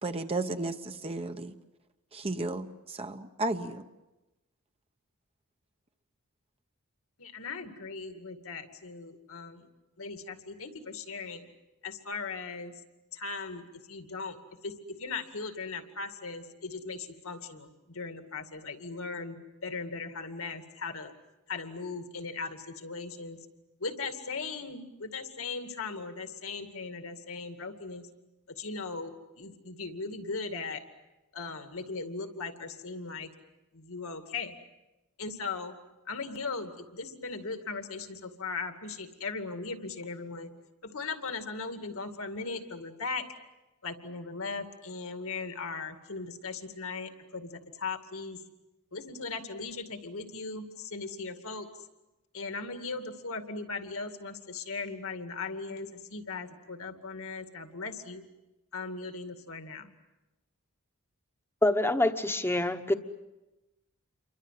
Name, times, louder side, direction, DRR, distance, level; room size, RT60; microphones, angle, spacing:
voice 1, 0.0-1.5 2.1-3.8, right 2 dB, 25° right, 7 dB, 1.0 m, -33 dB
voice 2, 7.2-9.7 10.0-11.5 11.8-12.7 13.1-13.6 13.9-14.4 14.6-14.7 15.0-21.1 21.5-23.4 23.8-28.1 28.6-30.8 31.3-33.3 33.7-34.5 35.2-35.7 36.1-40.5 40.9-43.2 43.8-48.4 48.9-51.7 52.3-58.2 58.7-59.9, left 4 dB, 65° left, 6 dB, 2.4 m, -38 dB
voice 3, 61.6-62.9, left 1 dB, 10° left, 8 dB, 1.2 m, -26 dB
28.5 x 24.0 x 7.6 m, 1.0 s
head